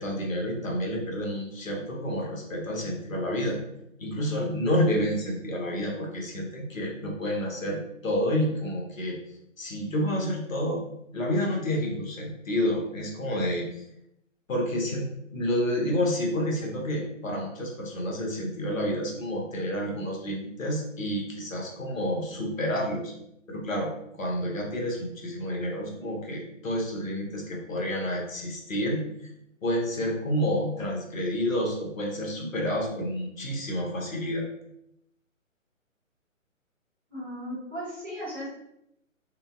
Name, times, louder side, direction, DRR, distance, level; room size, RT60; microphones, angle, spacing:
voice 1, 0.0-3.6 4.0-9.2 9.6-10.8 11.1-13.8 14.5-23.1 23.5-23.9 24.2-29.1 29.6-34.5, equal, 75° left, -1 dB, 0.9 m, -29 dB
voice 2, 37.1-38.5, equal, 15° right, -10 dB, 0.8 m, -36 dB
2.5 x 2.2 x 2.2 m, 0.78 s
figure-of-eight pair, 140°, 40 cm